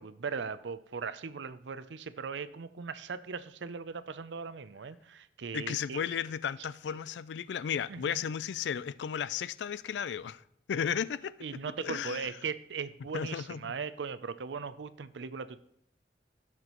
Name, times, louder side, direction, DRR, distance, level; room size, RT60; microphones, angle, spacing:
voice 1, 0.0-6.2 7.9-8.2 11.4-15.6, right 5 dB, 85° right, 0.5 m, -39 dB
voice 2, 5.5-10.4 10.7-11.3 11.8-12.3 13.1-13.7, left 8 dB, 75° left, 0.3 m, -34 dB
16.5 x 6.0 x 3.0 m
head